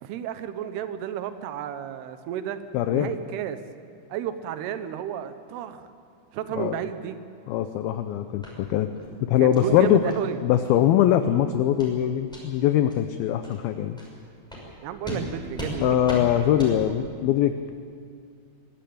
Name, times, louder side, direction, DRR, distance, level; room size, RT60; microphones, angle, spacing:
voice 1, 0.0-2.6 2.9-3.6 4.1-5.9 6.3-7.2 9.4-10.4 14.8-16.0, right 10 dB, 75° right, 10 dB, 3.0 m, -32 dB
voice 2, 2.7-3.1 6.6-6.8 7.5-8.9 9.2-10.0 10.4-14.0 15.8-17.7, left 11 dB, 80° left, 9 dB, 2.3 m, -22 dB
Stone Steps, 8.4-8.5 8.9-9.1 9.5-9.7 10.1-10.2 10.6-10.7 11.1-11.3 11.8-11.9 12.3-12.4 12.9-13.0 13.4-13.6 14.0-14.1 14.5-14.6 15.0-15.2 15.5-15.7 16.0-16.2 16.6-16.7, equal, ahead, 5.7 m, -36 dB
23.0 x 16.0 x 8.7 m, 2.2 s
omnidirectional pair, 4.9 m